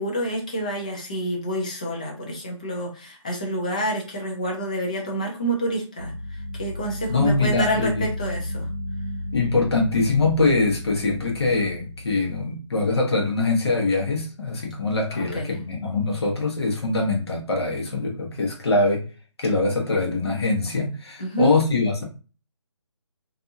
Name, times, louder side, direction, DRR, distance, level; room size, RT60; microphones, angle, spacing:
voice 1, 0.0-8.7 15.1-15.5 21.2-21.5, right 1 dB, 15° left, 0 dB, 0.3 m, -28 dB
sound 1, 6.0-12.1, left 1 dB, 50° right, 0.5 m, -33 dB
voice 2, 7.1-8.0 9.3-19.0 19.4-22.0, left 3 dB, 55° left, 0 dB, 1.0 m, -23 dB
2.6 x 2.4 x 2.6 m, 0.34 s
figure-of-eight pair, 160°, 16 cm